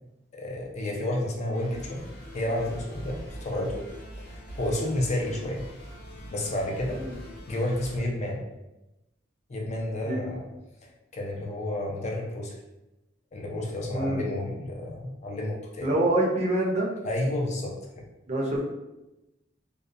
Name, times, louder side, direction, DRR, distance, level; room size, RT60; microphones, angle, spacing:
voice 1, 0.3-2.1 2.3-3.9 4.3-5.6 6.3-7.0 7.5-8.4 9.5-10.4 11.1-12.6 13.3-16.0 17.0-17.8, left 1 dB, 35° left, -1 dB, 0.4 m, -30 dB
sound 1, 1.5-8.0, equal, 60° left, 0.8 m, -42 dB
voice 2, 13.9-14.3 15.8-16.9 18.3-18.7, right 1 dB, 35° right, -2 dB, 0.4 m, -25 dB
2.3 x 2.1 x 2.5 m, 0.96 s
head